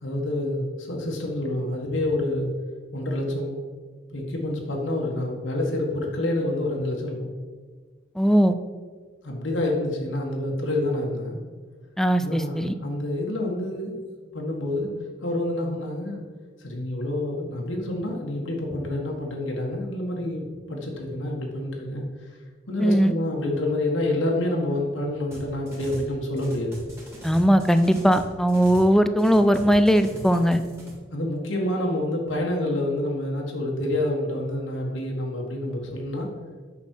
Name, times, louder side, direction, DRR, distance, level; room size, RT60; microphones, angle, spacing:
voice 1, 0.0-2.5 2.9-3.6 4.1-7.3 9.2-11.4 12.2-14.0 14.3-14.9 15.2-16.2 16.6-22.0 22.7-26.8 31.1-36.3, left 1 dB, 85° left, -1 dB, 1.7 m, -28 dB
voice 2, 8.2-8.5 12.0-12.7 22.8-23.1 27.2-30.6, equal, ahead, 10 dB, 0.4 m, -19 dB
sound 1, 25.3-26.1 26.4-28.9 29.2-30.9, equal, 15° right, 2.4 m, -40 dB
8.6 x 6.1 x 4.6 m, 1.5 s
head